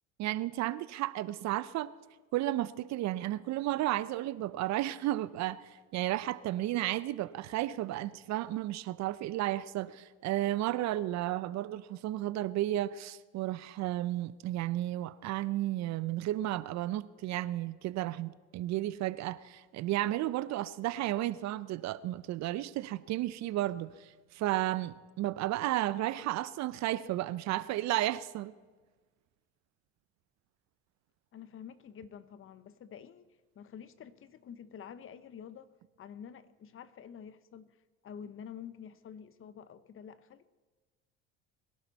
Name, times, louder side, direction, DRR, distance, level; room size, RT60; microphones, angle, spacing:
voice 1, 0.2-1.9 2.3-23.9 24.3-28.5, right 15 dB, 55° right, 0.7 m, -33 dB
voice 2, 31.3-33.3 33.5-37.7 38.0-40.5, left 8 dB, 40° left, 0.9 m, -48 dB
22.0 x 11.5 x 4.1 m
supercardioid pair, 80°, 32 cm